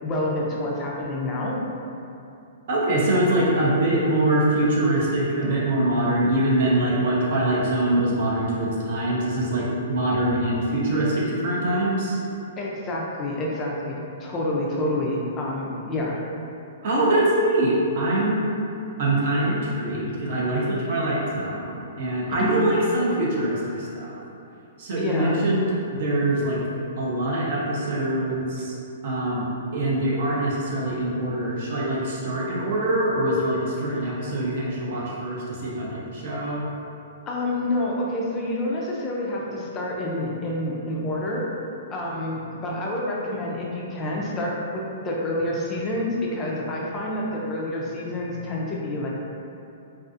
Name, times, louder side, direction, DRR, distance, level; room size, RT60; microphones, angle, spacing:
voice 1, 0.0-1.6 12.6-16.2 20.1-20.2 22.4-22.7 25.0-25.4 33.9-34.2 37.3-41.5 41.9-49.1, left 1 dB, 20° left, -3 dB, 0.3 m, -28 dB
voice 2, 2.7-12.2 16.8-18.5 19.0-24.1 24.8-26.6 27.0-28.7 29.0-29.4 29.7-36.6, right 1 dB, 50° right, -5 dB, 0.5 m, -23 dB
2.5 x 2.3 x 2.4 m, 2.7 s
hypercardioid pair, 165°, 0 cm